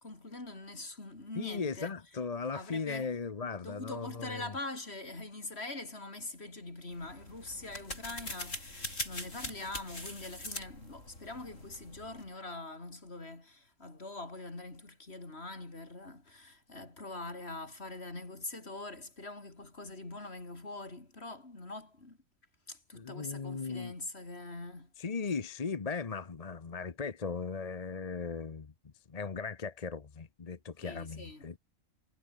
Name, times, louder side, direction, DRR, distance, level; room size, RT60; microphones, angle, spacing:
voice 1, 0.0-1.9 2.5-3.1 3.6-22.2 22.7-24.9 30.8-31.5, left 2 dB, 50° left, 4.2 m, -43 dB
voice 2, 1.3-4.5 22.9-23.9 25.0-28.7 29.1-31.6, left 5 dB, 30° left, 0.9 m, -37 dB
sound 1, 6.9-12.3, left 1 dB, 65° left, 8.2 m, -43 dB
omnidirectional pair, 1.4 m